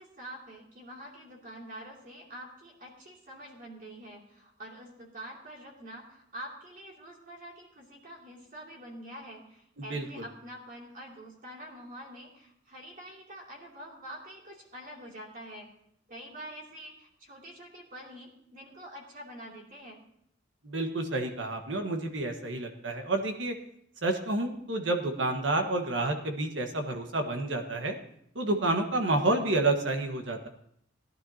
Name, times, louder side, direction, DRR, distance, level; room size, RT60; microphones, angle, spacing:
voice 1, 0.0-15.7 16.1-20.0, right 1 dB, 45° right, -2 dB, 2.8 m, -46 dB
voice 2, 9.8-10.3 20.6-23.5 24.0-28.0 28.3-30.5, right 2 dB, 70° right, 4 dB, 1.5 m, -29 dB
18.5 x 11.5 x 2.9 m, 0.70 s
head